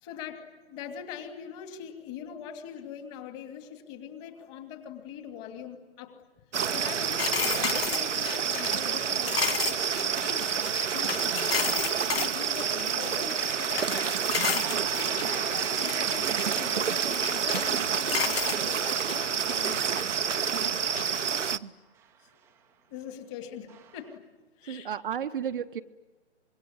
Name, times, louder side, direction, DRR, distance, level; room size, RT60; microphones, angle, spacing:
voice 1, 0.0-6.2 6.7-10.4 10.9-14.3 14.7-19.9 22.9-24.2 24.6-24.9, left 8 dB, 25° left, 5 dB, 2.7 m, -42 dB
sound 1, 6.5-21.6, right 7 dB, 80° right, 0.9 m, -28 dB
sound 2, 7.2-12.3 12.6-14.0 14.3-16.0 16.4-17.8 18.1-19.2 19.5-21.5, left 8 dB, 55° left, 1.3 m, -33 dB
sound 3, 13.1-18.4 19.5-22.6 23.7-24.2, right 9 dB, 5° right, 0.8 m, -46 dB
voice 2, 14.8-15.2 20.6-21.2 21.5-21.8 24.6-25.8, right 8 dB, 45° right, 9 dB, 0.9 m, -35 dB
26.0 x 22.5 x 9.8 m, 1.2 s
hypercardioid pair, 150°, 35 cm